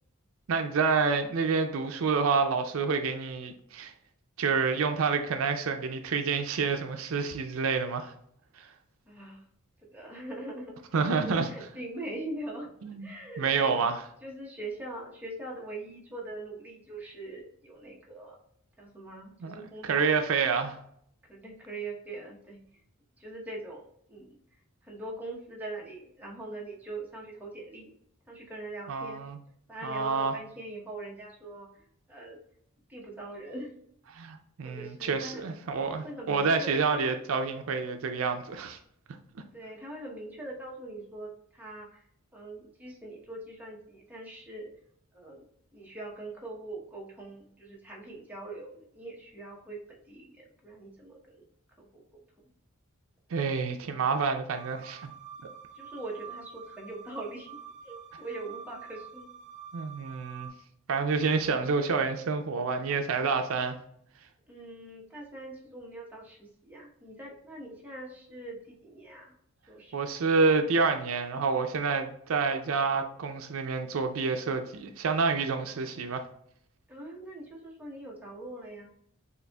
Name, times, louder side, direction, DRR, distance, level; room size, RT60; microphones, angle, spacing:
voice 1, 0.5-3.9 4.4-8.1 8.6-8.7 10.9-11.5 12.8-13.1 13.4-14.0 19.4-19.5 19.8-20.8 28.9-29.4 29.8-30.3 34.1-38.8 53.3-55.1 59.7-60.5 60.9-63.8 69.9-76.2, right 4 dB, 70° right, 0.4 m, -28 dB
voice 2, 9.1-9.5 9.9-10.8 11.2-12.7 13.0-13.9 14.2-18.4 18.8-20.1 21.3-22.8 23.2-27.9 28.3-29.2 29.7-32.4 32.9-33.7 34.6-35.5 35.9-37.0 39.5-44.7 45.1-45.4 45.7-51.4 51.8-52.0 55.7-57.5 57.8-59.3 64.5-69.4 69.7-70.1 76.9-78.9, right 2 dB, 10° right, 1.0 m, -42 dB
sound 1, 54.5-60.5, right 7 dB, 35° right, 0.8 m, -47 dB
6.6 x 2.4 x 2.3 m
head